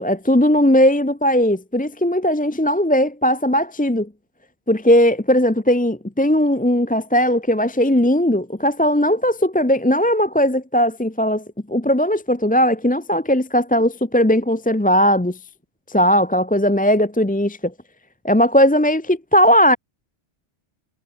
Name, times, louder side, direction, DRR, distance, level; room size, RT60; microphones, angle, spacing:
voice 1, 0.0-4.1 4.7-15.4 15.9-17.7 18.2-19.8, equal, 10° left, 0.7 m, -18 dB
omnidirectional pair, 1.2 m